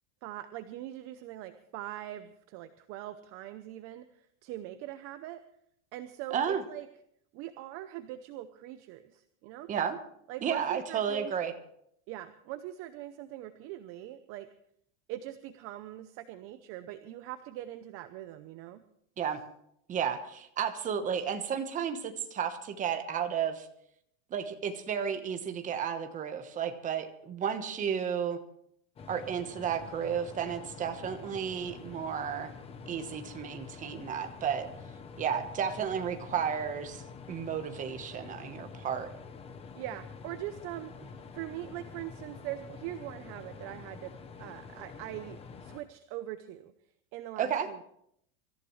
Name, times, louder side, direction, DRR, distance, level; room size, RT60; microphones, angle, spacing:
voice 1, 0.2-5.4 5.9-6.9 7.3-9.7 10.3-11.3 12.1-14.5 15.1-18.8 39.8-40.9 41.3-44.1 44.4-46.7 47.1-47.8, right 13 dB, 35° right, 10 dB, 0.7 m, -42 dB
voice 2, 6.3-6.6 9.7-10.0 10.4-11.5 19.2-19.4 19.9-23.7 24.3-28.4 29.1-32.5 32.9-34.7 35.2-37.0 37.3-39.1 47.4-47.7, right 8 dB, 20° right, 7 dB, 1.1 m, -32 dB
sound 1, 29.0-45.8, left 5 dB, 15° left, 0.7 m, -47 dB
25.0 x 14.5 x 3.2 m, 0.72 s
supercardioid pair, 165°, 38 cm